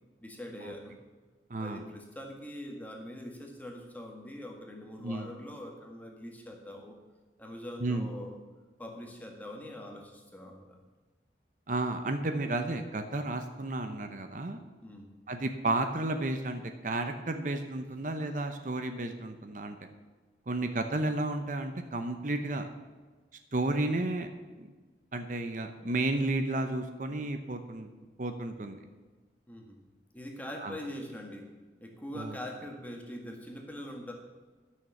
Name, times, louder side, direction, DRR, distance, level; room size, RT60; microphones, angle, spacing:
voice 1, 0.2-1.0 1.6-7.0 7.4-8.4 8.8-10.8 14.8-15.1 29.5-29.8 30.1-31.5 31.8-34.1, left 1 dB, 10° left, 2 dB, 1.6 m, -43 dB
voice 2, 1.5-1.8 5.0-5.3 7.8-8.1 11.7-14.6 15.3-19.8 20.5-22.7 23.5-24.3 24.6-24.7 25.1-27.9 28.2-28.8 30.6-30.7 32.1-32.4, right 2 dB, 45° right, 7 dB, 0.8 m, -32 dB
12.5 x 6.5 x 7.1 m, 1.3 s
head